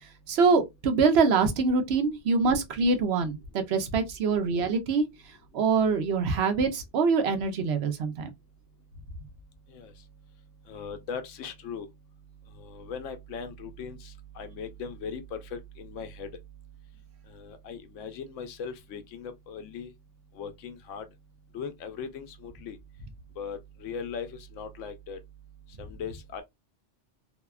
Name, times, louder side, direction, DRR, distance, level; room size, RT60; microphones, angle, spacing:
voice 1, 0.3-5.1 5.5-8.3, right 4 dB, 65° right, 0.8 m, -24 dB
voice 2, 10.7-11.9 12.6-16.3 17.3-19.9 20.3-21.0 21.5-22.8 23.4-25.2 25.8-26.4, left 5 dB, 85° left, 0.9 m, -39 dB
2.7 x 2.1 x 2.2 m
omnidirectional pair, 1.3 m